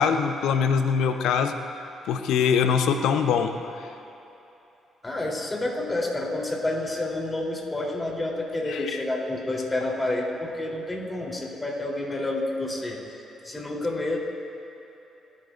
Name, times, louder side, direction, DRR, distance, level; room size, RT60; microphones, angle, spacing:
voice 1, 0.0-1.5 2.1-3.6 8.7-8.8, left 6 dB, 75° left, 7 dB, 0.8 m, -22 dB
voice 2, 5.0-13.0 13.4-14.2, left 2 dB, 25° left, -3 dB, 3.5 m, -29 dB
30.0 x 10.5 x 2.6 m, 3.0 s
hypercardioid pair, 50°, 0 cm